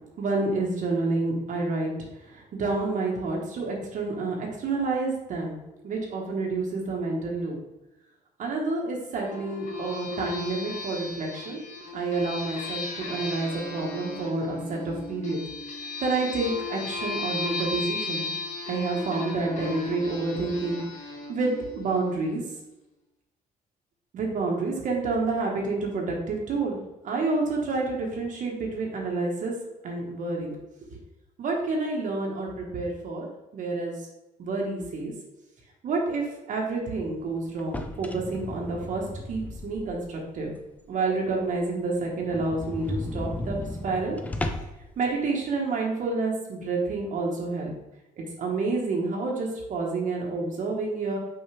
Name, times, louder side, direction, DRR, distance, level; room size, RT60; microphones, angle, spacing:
voice 1, 0.2-1.9 2.2-7.6 8.4-11.6 11.9-15.4 16.0-18.3 18.7-20.8 21.1-22.4 24.1-26.8 27.0-29.5 29.8-30.6 30.9-31.0 31.4-33.3 33.5-33.9 34.4-35.1 35.8-39.0 39.3-40.5 40.9-43.6 43.8-44.2 45.0-47.7 48.2-51.2, right 3 dB, 55° right, -1 dB, 1.3 m, -29 dB
sound 1, 9.2-22.4, left 3 dB, 50° left, 1.3 m, -36 dB
sound 2, 37.6-40.1 40.6-40.7 41.1-41.2 41.4-41.5 41.8-41.9 42.2-44.9, left 1 dB, 10° left, 0.5 m, -35 dB
5.8 x 4.9 x 3.4 m, 0.98 s
cardioid pair, 130°, 16 cm